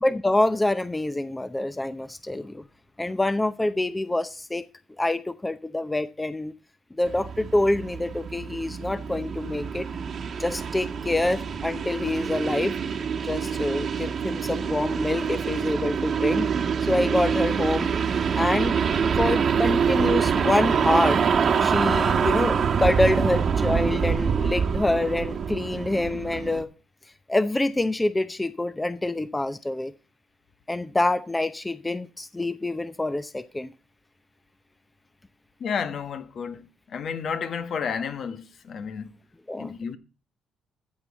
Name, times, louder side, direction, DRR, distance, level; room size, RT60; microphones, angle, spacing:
voice 1, 0.0-2.6 3.0-4.7 5.0-6.5 6.9-9.9 10.4-12.7 13.2-16.5 16.8-17.9 18.4-18.8 19.2-21.2 21.6-26.7 27.3-29.9 30.7-33.7 39.5-39.7, left 2 dB, 15° left, 0.7 m, -26 dB
sound 1, 7.0-26.6, right 6 dB, 55° right, 1.3 m, -25 dB
voice 2, 35.6-39.1 39.6-40.0, left 6 dB, 60° left, 1.2 m, -31 dB
13.5 x 7.5 x 4.0 m
cardioid pair, 90°, 0 cm